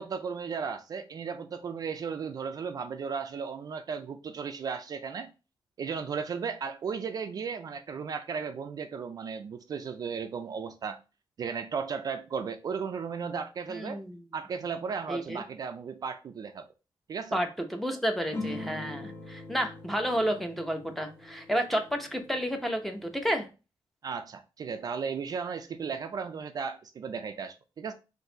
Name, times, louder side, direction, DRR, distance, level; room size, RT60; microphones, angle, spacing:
voice 1, 0.0-5.3 5.8-11.0 11.4-14.0 14.3-16.7 17.1-17.4 24.0-27.9, right 6 dB, 45° right, 0.4 m, -35 dB
voice 2, 13.7-14.2 15.1-15.4 17.3-23.5, equal, ahead, 0.7 m, -31 dB
sound 1, 18.3-23.2, left 2 dB, 25° left, 1.0 m, -42 dB
4.0 x 2.6 x 3.8 m
wide cardioid pair, 135°, 9 cm